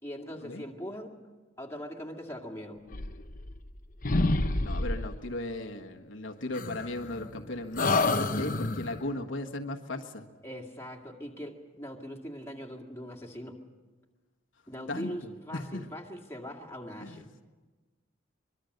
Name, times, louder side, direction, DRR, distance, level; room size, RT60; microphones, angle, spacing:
voice 1, 0.0-1.2 1.6-2.8 10.4-13.6 14.7-17.3, equal, 15° left, 1 dB, 2.2 m, -41 dB
sound 1, 2.9-3.8 4.0-5.2 6.5-7.4 7.7-9.0, left 2 dB, 40° left, 1.0 m, -29 dB
voice 2, 4.6-10.2 14.9-15.8 17.0-17.3, left 2 dB, 75° left, 3 dB, 1.5 m, -37 dB
24.0 x 23.0 x 6.6 m, 1.3 s
head